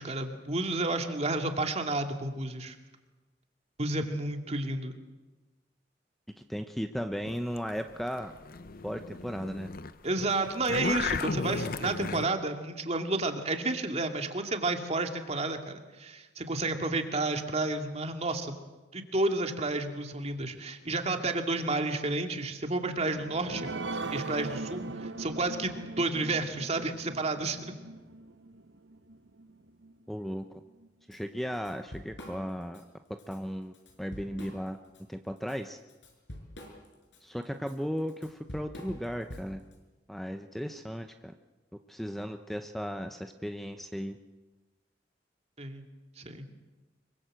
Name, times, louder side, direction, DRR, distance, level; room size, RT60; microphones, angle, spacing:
voice 1, 0.0-2.7 3.8-4.9 10.0-18.6 18.9-23.7 24.1-27.6 45.6-45.8 46.2-46.5, right 2 dB, 35° right, 5 dB, 2.4 m, -31 dB
voice 2, 6.4-8.3 8.8-9.7 30.1-30.6 31.1-32.8 33.3-33.7 34.0-34.8 35.1-35.8 37.2-39.6 40.1-41.3 41.9-44.2, equal, ahead, 7 dB, 0.8 m, -36 dB
sound 1, 7.2-9.9 10.2-12.3, left 4 dB, 55° left, 0.8 m, -35 dB
sound 2, 22.9-29.9 30.4-30.5 30.8-30.9, right 3 dB, 75° right, 1.0 m, -40 dB
Drum kit / Drum, 31.1-31.2 31.5-32.8 33.2-33.4 33.7-35.0 35.4-39.7, equal, 75° left, 6.5 m, -46 dB
25.0 x 23.5 x 7.8 m, 1.2 s
head